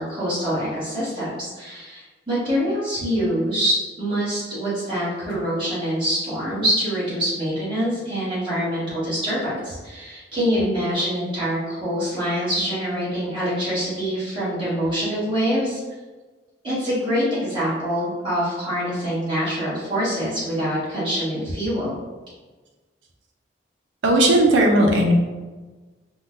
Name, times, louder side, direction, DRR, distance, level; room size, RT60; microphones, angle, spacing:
voice 1, 0.0-15.8 16.6-22.0, equal, 25° right, -10 dB, 1.4 m, -25 dB
voice 2, 24.0-25.1, right 1 dB, 90° right, 1 dB, 0.6 m, -16 dB
3.5 x 2.2 x 2.5 m, 1.3 s
head